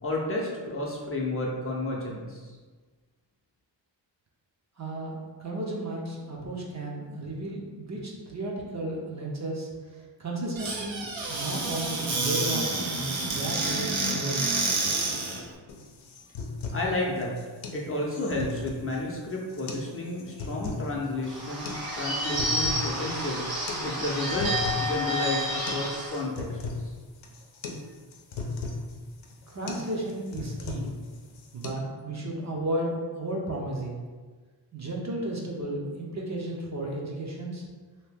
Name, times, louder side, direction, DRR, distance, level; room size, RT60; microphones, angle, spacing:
voice 1, 0.0-2.5 16.7-17.3 17.7-21.7 22.0-23.5 23.8-24.5 24.8-26.9, left 2 dB, 30° left, -3 dB, 0.6 m, -31 dB
voice 2, 4.8-14.5 29.5-31.0 31.5-34.1 34.7-37.6, right 1 dB, 40° right, -2 dB, 0.6 m, -34 dB
Squeak / Cupboard open or close, 10.6-15.4, right 3 dB, 85° right, 0.8 m, -29 dB
sound 1, 15.7-31.7, left 3 dB, 90° left, 0.6 m, -38 dB
Bird / Bell, 21.2-26.2, equal, 55° right, 1.0 m, -30 dB
2.8 x 2.6 x 3.4 m, 1.4 s
wide cardioid pair, 120°, 45 cm